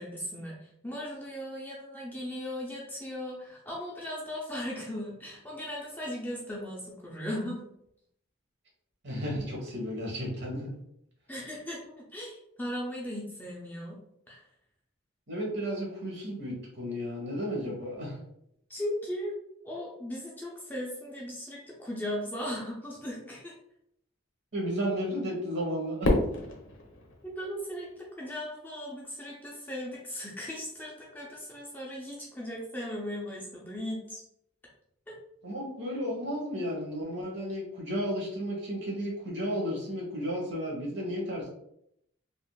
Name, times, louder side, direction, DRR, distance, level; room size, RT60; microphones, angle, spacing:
voice 1, 0.0-7.6 11.3-14.0 14.3-14.4 18.7-19.3 19.6-23.5 27.2-34.2 35.1-35.2, left 1 dB, 10° left, -4 dB, 0.5 m, -37 dB
voice 2, 9.0-10.7 15.3-18.2 24.5-26.1 35.4-41.5, equal, 55° right, -2 dB, 1.1 m, -33 dB
Fireworks, 26.0-28.4, left 1 dB, 75° left, 0.7 m, -30 dB
3.6 x 2.5 x 2.2 m, 0.76 s
head